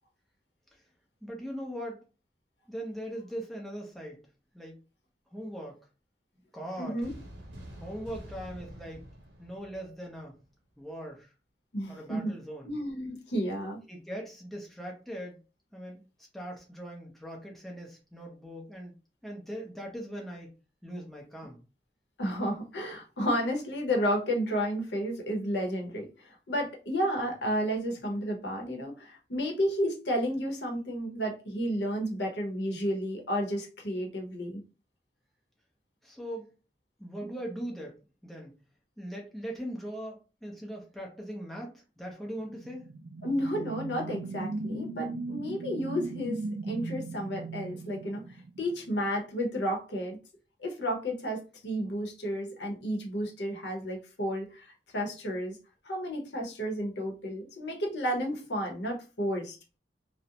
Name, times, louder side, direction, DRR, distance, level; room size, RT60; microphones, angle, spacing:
voice 1, 1.2-2.0 2.7-4.2 4.5-4.8 5.3-5.9 6.5-7.1 7.8-9.1 9.4-10.4 10.8-11.3 11.9-12.8 13.9-15.4 15.7-16.0 16.3-18.9 19.2-20.5 20.8-21.6 36.0-36.5 37.0-38.6 39.0-42.9, equal, ahead, 0.6 m, -40 dB
voice 2, 6.8-7.2 11.7-12.3 12.6-13.8 22.2-34.6 43.2-46.4 46.7-50.2 50.6-55.6 55.8-59.6, equal, 75° left, 0.8 m, -32 dB
sound 1, 7.0-10.5, equal, 75° right, 0.7 m, -47 dB
sound 2, 42.4-48.9, right 3 dB, 50° right, 0.4 m, -38 dB
2.4 x 2.1 x 2.8 m
head